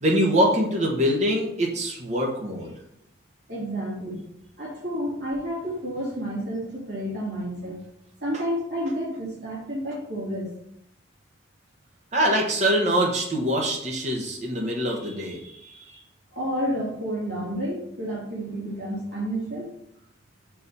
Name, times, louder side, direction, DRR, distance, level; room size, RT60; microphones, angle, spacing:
voice 1, 0.0-2.7 12.1-16.0, equal, 40° right, -1 dB, 1.2 m, -24 dB
voice 2, 3.5-4.2 4.6-7.8 8.2-10.5 16.3-19.7, equal, 60° right, -6 dB, 2.8 m, -30 dB
5.2 x 4.8 x 5.4 m, 0.74 s
head